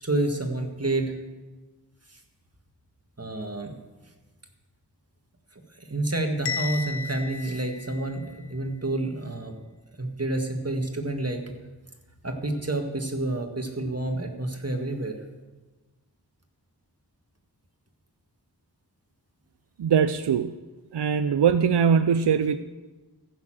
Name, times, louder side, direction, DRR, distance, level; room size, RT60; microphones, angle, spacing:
voice 1, 0.0-1.1 2.1-2.2 3.2-3.7 5.8-9.5 10.0-11.4 12.2-15.2, right 2 dB, 35° right, 4 dB, 1.8 m, -29 dB
Bell, 6.5-8.5, left 5 dB, 80° left, 0.7 m, -34 dB
voice 2, 19.8-20.6 20.9-22.6, right 7 dB, 80° right, 11 dB, 0.5 m, -21 dB
15.0 x 6.6 x 7.6 m, 1.2 s
wide cardioid pair, 45°, 40 cm